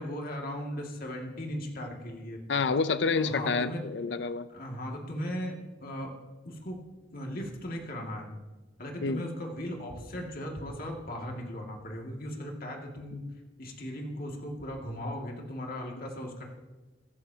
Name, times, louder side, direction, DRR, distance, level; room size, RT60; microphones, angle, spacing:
voice 1, 0.0-2.4 3.1-3.9 4.5-5.5 5.8-6.1 6.4-6.8 7.1-8.3 8.8-13.3 13.6-16.6, equal, 55° left, 1 dB, 2.2 m, -37 dB
voice 2, 2.5-4.5 9.0-9.2, left 4 dB, 70° left, 13 dB, 0.5 m, -28 dB
23.0 x 11.5 x 2.8 m, 1.2 s
head